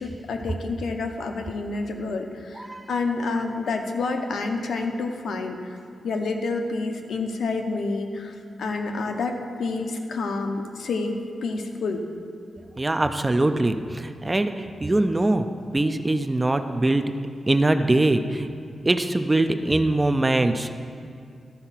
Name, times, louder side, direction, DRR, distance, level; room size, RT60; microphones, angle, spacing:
voice 1, 0.0-5.8 6.0-12.0, left 3 dB, 80° left, 4 dB, 0.8 m, -29 dB
voice 2, 2.6-2.9 12.8-15.5 15.7-17.1 17.5-18.5 18.9-20.7, right 2 dB, 15° right, 8 dB, 0.3 m, -22 dB
13.0 x 4.4 x 5.7 m, 2.3 s
wide cardioid pair, 175°, 0 cm